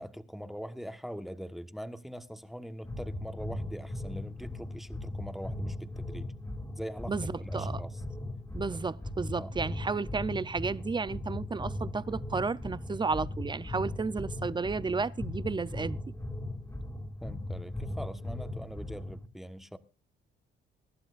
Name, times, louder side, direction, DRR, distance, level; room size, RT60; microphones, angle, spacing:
voice 1, 0.0-6.3 6.8-8.0 9.4-9.5 17.2-19.8, equal, ahead, 1.3 m, -42 dB
sound 1, 2.8-19.3, left 1 dB, 15° left, 2.5 m, -38 dB
voice 2, 8.5-16.0, right 4 dB, 25° right, 0.6 m, -32 dB
24.0 x 11.5 x 2.5 m
cardioid pair, 90°, 20 cm